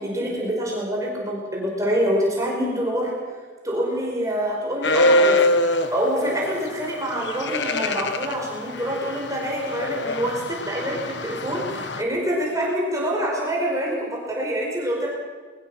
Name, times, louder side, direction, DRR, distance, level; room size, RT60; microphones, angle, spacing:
voice 1, 0.0-3.1 3.6-5.5 5.9-15.1, equal, 15° right, -3 dB, 4.9 m, -26 dB
sound 1, 4.8-6.1 7.2-12.0, left 1 dB, 60° left, 1.3 m, -23 dB
22.0 x 20.0 x 6.1 m, 1.5 s
head